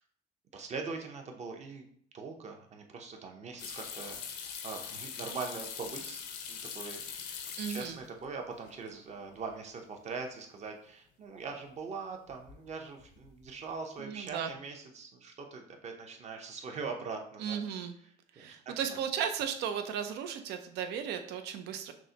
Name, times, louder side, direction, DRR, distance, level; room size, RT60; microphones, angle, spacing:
voice 1, 0.5-1.9 2.1-6.2 6.5-7.0 7.7-17.6 18.4-18.6 18.9-19.0, right 4 dB, 40° right, 3 dB, 0.8 m, -42 dB
sound 1, 3.6-8.3 8.5-9.2 9.5-9.6 12.3-12.7 13.0-13.5, left 7 dB, 80° left, 0.7 m, -42 dB
voice 2, 7.6-8.0 14.0-14.5 17.4-17.9 18.3-21.9, right 8 dB, 80° right, 7 dB, 0.5 m, -35 dB
6.1 x 2.1 x 2.8 m, 0.63 s
cardioid pair, 110°, 17 cm